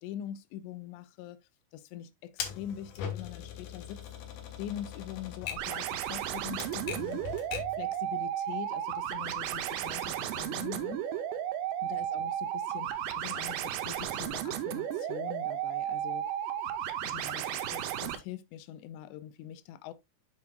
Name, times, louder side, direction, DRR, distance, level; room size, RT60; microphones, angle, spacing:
voice 1, 0.0-1.4 1.7-4.0 4.6-7.2 7.8-11.0 11.8-16.3 17.0-19.9, left 11 dB, 85° left, 2.8 m, -43 dB
Typewriter, 2.4-7.8, left 8 dB, 65° left, 2.2 m, -41 dB
sound 1, 5.6-18.2, right 10 dB, 90° right, 3.0 m, -34 dB
8.6 x 6.1 x 2.3 m
omnidirectional pair, 5.0 m